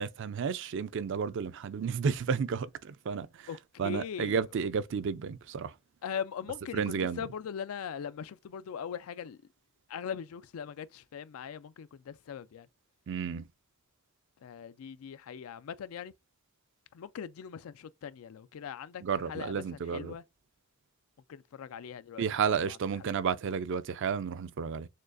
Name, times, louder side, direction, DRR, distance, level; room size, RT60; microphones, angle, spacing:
voice 1, 0.0-3.3 3.8-5.7 6.7-7.2 13.1-13.4 19.0-20.1 22.2-24.9, right 6 dB, 60° right, 0.4 m, -32 dB
voice 2, 3.5-4.4 6.0-9.4 9.9-12.7 14.4-16.1 16.9-20.2 21.3-23.1, left 7 dB, 85° left, 0.4 m, -40 dB
6.4 x 2.3 x 2.5 m
head